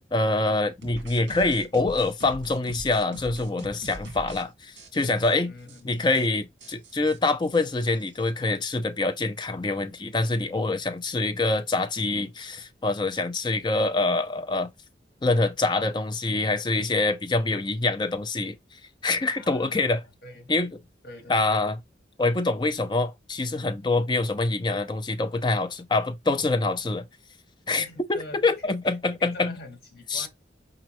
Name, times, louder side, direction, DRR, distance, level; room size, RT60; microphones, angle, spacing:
voice 1, 0.1-5.5 5.8-14.7 15.2-18.6 19.0-20.0 20.5-20.7 21.3-21.8 22.2-27.1 27.7-27.8 28.1-29.5 30.1-30.3, left 3 dB, 25° left, 0.4 m, -25 dB
sound 1, 0.8-4.4 4.8-5.3 5.7-5.8 6.1-6.3 6.6-8.3, right 1 dB, 75° right, 1.2 m, -43 dB
voice 2, 5.4-6.2 10.4-10.6 17.5-17.6 19.2-20.0 20.2-20.5 21.0-21.6 27.8-28.7 29.2-30.3, left 1 dB, 55° left, 1.4 m, -45 dB
4.9 x 3.1 x 2.9 m
head